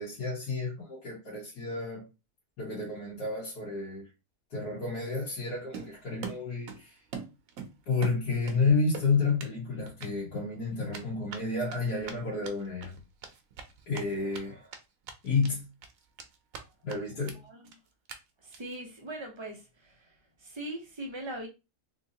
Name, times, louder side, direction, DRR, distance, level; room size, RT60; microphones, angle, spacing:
voice 1, 0.0-2.1 2.6-4.0 4.5-7.0 7.9-13.0 13.9-14.7 15.2-15.7 16.8-17.4, left 4 dB, 90° left, 1.8 m, -30 dB
Run, 5.7-6.8 7.1-8.6 8.9-9.5 9.9-10.1 10.9-14.4 14.7-14.8 15.0-15.5 15.8-16.6 16.9-17.0 17.3-17.4 17.6-17.7 18.1-18.2 18.5-18.8, right 6 dB, 65° right, 1.0 m, -42 dB
voice 2, 18.4-20.0 20.4-21.5, right 1 dB, 45° right, 0.3 m, -40 dB
3.6 x 2.9 x 2.7 m
omnidirectional pair, 1.6 m